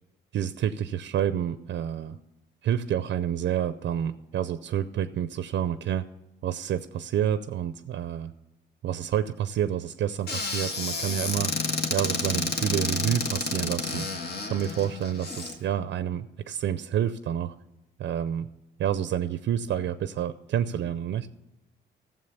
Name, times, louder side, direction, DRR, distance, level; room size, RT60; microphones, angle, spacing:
voice 1, 0.3-2.2 2.6-6.0 6.4-8.3 8.8-14.1 14.5-17.5 18.0-18.5 18.8-21.3, right 10 dB, 65° right, 13 dB, 0.5 m, -29 dB
Squeak / Cupboard open or close, 10.3-15.5, left 3 dB, 55° left, 1.6 m, -30 dB
13.0 x 7.5 x 6.8 m, 1.0 s
cardioid pair, 90°, 20 cm